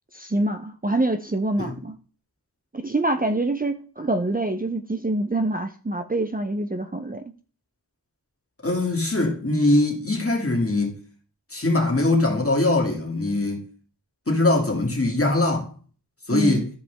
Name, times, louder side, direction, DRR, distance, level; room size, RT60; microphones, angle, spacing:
voice 1, 0.1-2.0 2.7-7.3 16.3-16.6, right 2 dB, 20° right, 0.6 m, -25 dB
voice 2, 8.6-11.0 11.5-13.6 14.3-15.7 16.3-16.7, left 2 dB, 35° left, 2.6 m, -22 dB
13.5 x 5.1 x 3.5 m
wide cardioid pair, 60°, 39 cm